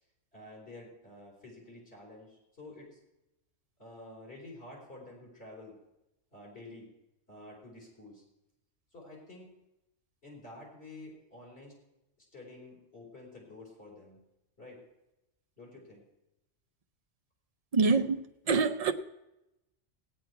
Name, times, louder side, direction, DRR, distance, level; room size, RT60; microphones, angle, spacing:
voice 1, 0.3-3.0 3.8-5.8 6.3-6.9 7.3-8.2 8.9-9.5 10.2-11.7 12.3-14.2 14.6-14.8 15.6-16.0, left 2 dB, 60° left, 4.5 m, -49 dB
voice 2, 17.7-18.9, right 4 dB, 40° right, 0.6 m, -26 dB
17.0 x 9.6 x 4.6 m
omnidirectional pair, 1.3 m